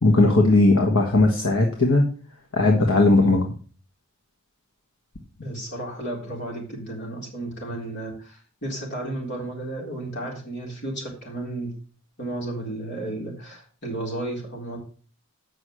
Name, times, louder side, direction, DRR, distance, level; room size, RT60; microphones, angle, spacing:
voice 1, 0.0-2.0 2.5-3.4, left 2 dB, 70° left, 1 dB, 1.4 m, -18 dB
voice 2, 5.4-11.7 12.2-14.8, right 1 dB, 55° left, -1 dB, 3.8 m, -33 dB
8.3 x 6.2 x 6.2 m, 0.40 s
head